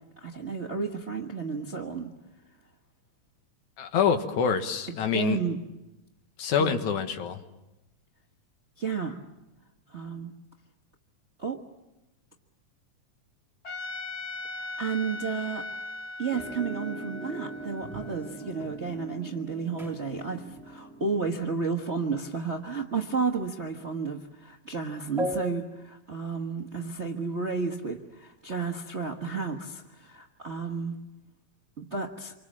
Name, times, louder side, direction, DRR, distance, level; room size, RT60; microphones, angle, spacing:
voice 1, 0.2-2.1 5.1-5.6 6.6-6.8 8.8-9.2 9.9-10.3 11.4-11.6 14.8-15.6 16.2-31.0 31.8-32.3, right 5 dB, 50° right, 2 dB, 0.8 m, -32 dB
voice 2, 3.8-5.4 6.4-7.4, left 7 dB, 90° left, 7 dB, 2.9 m, -26 dB
Trumpet, 13.6-18.8, left 2 dB, 40° left, 1.6 m, -39 dB
sound 1, 16.3-23.0 23.7-23.8 25.2-25.5, right 1 dB, ahead, 2.0 m, -39 dB
27.5 x 24.5 x 7.4 m, 0.97 s
omnidirectional pair, 3.3 m